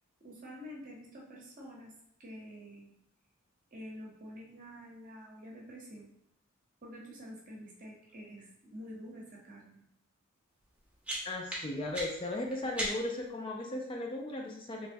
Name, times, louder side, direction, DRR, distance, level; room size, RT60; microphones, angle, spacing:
voice 1, 0.2-1.9 2.2-2.9 3.7-6.1 6.8-9.8, equal, 40° right, -3 dB, 0.9 m, -48 dB
sound 1, 10.6-13.3, right 1 dB, 5° right, 0.7 m, -40 dB
voice 2, 11.2-14.9, left 2 dB, 25° left, 0 dB, 0.3 m, -36 dB
3.3 x 3.0 x 2.6 m, 0.76 s
head